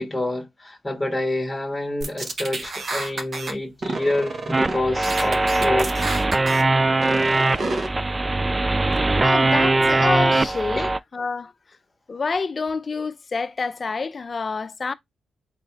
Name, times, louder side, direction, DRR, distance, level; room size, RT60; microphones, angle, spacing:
voice 1, 0.0-5.9 10.7-10.9, left 1 dB, 10° left, 1.5 m, -27 dB
sound 1, 2.0-3.5 3.8-4.8 5.0-6.6 7.0-7.9, right 3 dB, 50° right, 1.0 m, -29 dB
sound 2, 4.5-11.0, right 2 dB, 25° right, 0.3 m, -21 dB
voice 2, 9.2-11.5 12.1-14.9, left 4 dB, 40° left, 0.5 m, -27 dB
4.0 x 2.7 x 3.4 m
cardioid pair, 65°, 0 cm